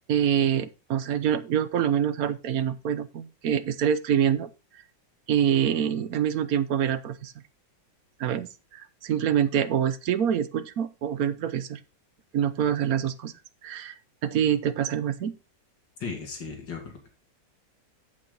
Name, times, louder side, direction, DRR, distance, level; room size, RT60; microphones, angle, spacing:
voice 1, 0.1-4.5 5.3-7.3 8.2-11.8 12.3-13.3 13.6-15.3, right 9 dB, 60° right, 13 dB, 1.1 m, -26 dB
voice 2, 16.0-17.1, left 5 dB, 70° left, 3 dB, 3.0 m, -36 dB
8.7 x 7.6 x 3.9 m, 0.29 s
omnidirectional pair, 2.0 m